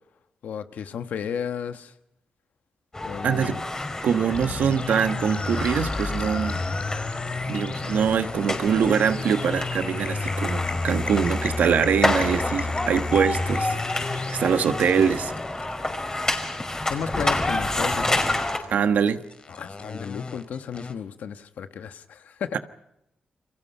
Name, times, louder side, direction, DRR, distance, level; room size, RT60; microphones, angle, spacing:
voice 1, 0.4-1.9 3.0-3.6 16.8-18.2 19.6-22.6, left 7 dB, 85° left, 1.2 m, -33 dB
sound 1, 2.9-18.6, left 2 dB, 25° left, 5.2 m, -29 dB
voice 2, 3.2-3.6 4.0-6.6 7.5-15.3 18.7-19.2 22.5-22.6, right 7 dB, 80° right, 1.3 m, -24 dB
sound 2, 4.3-17.4 18.3-20.9, left 3 dB, 45° left, 2.8 m, -32 dB
29.5 x 24.0 x 5.5 m
cardioid pair, 65°, 3 cm